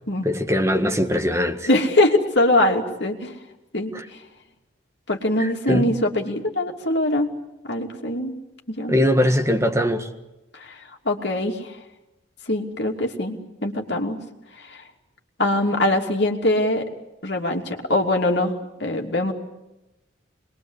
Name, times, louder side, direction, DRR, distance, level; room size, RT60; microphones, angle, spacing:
voice 1, 0.2-1.7 3.9-4.0 5.4-5.9 8.9-10.1, equal, 15° right, 4 dB, 1.7 m, -21 dB
voice 2, 1.7-3.3 3.7-3.9 5.1-7.3 7.7-8.3 8.7-9.0 10.5-10.7 11.0-11.7 12.5-14.2 14.6-14.8 15.4-16.8 17.2-18.5 18.8-19.3, left 1 dB, 60° left, 2 dB, 2.9 m, -22 dB
26.0 x 22.0 x 8.2 m, 0.97 s
head